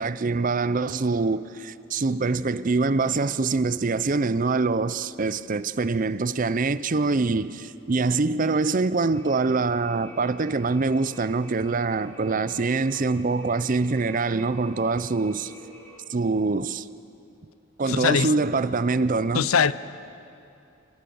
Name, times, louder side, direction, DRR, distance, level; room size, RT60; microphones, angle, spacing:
voice 1, 0.0-15.5 16.1-16.9 17.8-19.5, right 3 dB, 40° right, 0.5 m, -24 dB
sound 1, 9.1-16.0, equal, 10° left, 5.6 m, -48 dB
voice 2, 17.9-18.3 19.3-19.7, left 6 dB, 80° left, 0.6 m, -21 dB
26.0 x 18.0 x 7.0 m
head